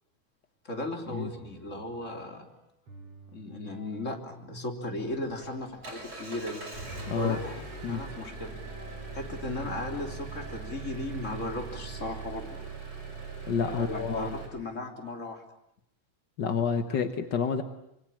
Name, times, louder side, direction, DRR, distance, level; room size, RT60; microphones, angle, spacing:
voice 1, 0.6-2.4 3.3-6.6 7.1-8.6 9.1-12.6 13.6-15.4, left 2 dB, 20° left, 3 dB, 3.3 m, -36 dB
sound 1, 1.3-12.0, right 1 dB, 45° right, 7.2 m, -51 dB
Engine, 4.9-14.5, right 4 dB, 25° right, 6.5 m, -41 dB
voice 2, 7.1-7.4 7.8-8.0 13.5-14.4 16.4-17.6, left 6 dB, 60° left, 8 dB, 1.2 m, -29 dB
26.0 x 24.5 x 8.8 m, 0.80 s
omnidirectional pair, 3.8 m